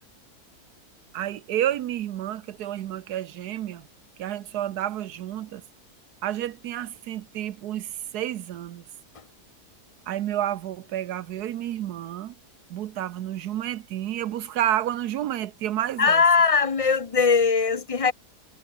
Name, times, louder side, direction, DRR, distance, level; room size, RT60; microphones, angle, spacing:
voice 1, 1.1-3.9 4.2-5.6 6.2-8.8 10.1-12.3 12.7-16.2, right 12 dB, 80° right, 1.3 m, -30 dB
voice 2, 16.0-18.1, left 5 dB, 30° left, 0.6 m, -20 dB
omnidirectional pair, 1.6 m